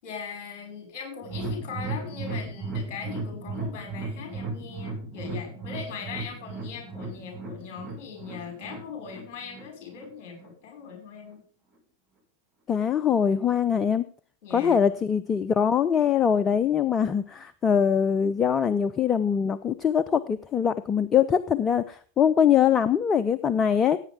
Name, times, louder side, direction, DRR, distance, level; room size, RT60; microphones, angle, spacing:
voice 1, 0.0-11.4 14.4-15.0, left 6 dB, 45° left, 4 dB, 5.7 m, -40 dB
sound 1, 1.2-10.5 10.8-10.9 11.3-11.4, right 3 dB, 15° right, 5.1 m, -36 dB
voice 2, 12.7-14.0 14.5-24.0, left 8 dB, 25° left, 15 dB, 0.6 m, -23 dB
16.5 x 8.9 x 3.6 m, 0.42 s
figure-of-eight pair, 90°, 0 cm